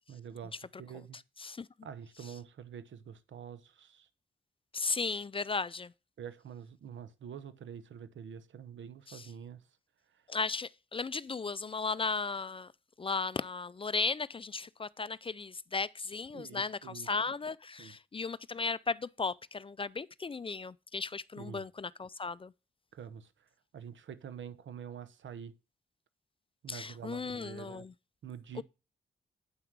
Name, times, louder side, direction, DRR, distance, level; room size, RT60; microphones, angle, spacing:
voice 1, 0.1-0.5 0.8-1.2 1.8-4.1 6.2-9.6 16.3-17.1 17.8-17.9 21.4-21.6 22.9-23.3 23.7-25.5 26.6-27.8 28.2-28.6, right 8 dB, 75° right, 0.9 m, -46 dB
voice 2, 0.9-1.7 2.2-2.3 4.7-5.9 9.1-9.3 10.3-12.7 13.0-22.5 26.7-27.9 28.5-28.6, left 4 dB, 25° left, 0.4 m, -36 dB
8.1 x 5.8 x 4.7 m
cardioid pair, 55°, 20 cm